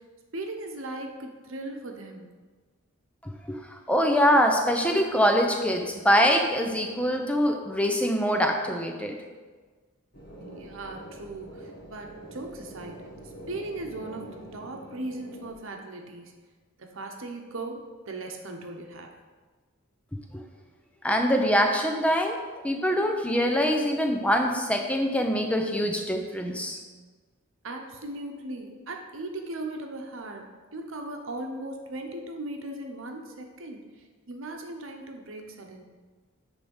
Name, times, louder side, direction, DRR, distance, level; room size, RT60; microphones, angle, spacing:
voice 1, 0.3-2.3 10.4-13.0 13.5-16.3 16.8-19.1 27.6-30.5 30.7-33.8 34.3-35.8, right 2 dB, 65° right, 3 dB, 1.0 m, -38 dB
voice 2, 3.9-9.2 21.0-22.4 22.6-26.8, equal, 5° left, 3 dB, 0.7 m, -24 dB
sound 1, 10.1-15.5, right 1 dB, 45° left, 1.4 m, -45 dB
9.8 x 3.6 x 5.4 m, 1.4 s
head